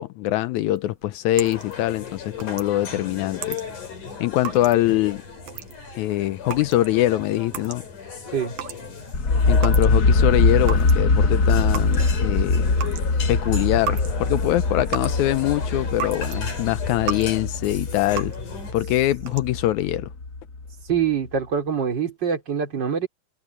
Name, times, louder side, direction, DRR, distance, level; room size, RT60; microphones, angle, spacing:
voice 1, 0.0-3.6 4.2-5.2 5.9-7.8 9.5-12.7 13.3-18.3 18.7-20.1, left 15 dB, 85° left, 1.7 m, -23 dB
sound 1, 0.7-10.2 10.5-16.4 16.8-17.4 17.7-18.5 19.1-19.7, right 8 dB, 80° right, 3.2 m, -36 dB
sound 2, 1.4-18.7, left 6 dB, 60° left, 6.4 m, -37 dB
sound 3, 9.1-21.0, left 3 dB, 35° left, 1.7 m, -22 dB
voice 2, 20.9-23.1, right 7 dB, 30° right, 3.8 m, -24 dB
omnidirectional pair, 4.0 m